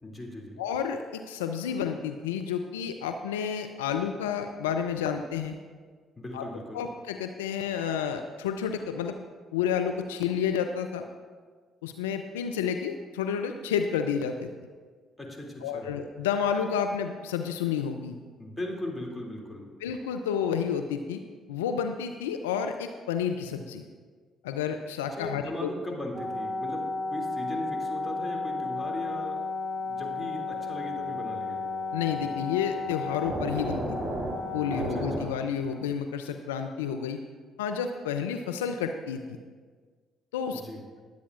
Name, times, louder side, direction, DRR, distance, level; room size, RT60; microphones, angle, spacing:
voice 1, 0.0-0.6 6.2-6.8 15.2-15.9 18.4-19.7 25.2-29.4 29.9-31.6 34.8-35.4 40.5-40.8, left 1 dB, 15° left, -1 dB, 2.6 m, -38 dB
voice 2, 0.6-5.6 6.3-6.4 6.7-9.2 9.5-11.0 11.8-14.5 15.6-18.2 19.8-21.2 21.5-23.8 24.4-25.7 31.9-34.0 34.5-37.2 37.6-39.4 40.3-40.6, left 7 dB, 80° left, 6 dB, 0.4 m, -30 dB
sound 1, 26.1-35.2, left 2 dB, 20° right, 2.9 m, -32 dB
21.0 x 8.3 x 2.5 m, 1.6 s
hypercardioid pair, 50°, 0 cm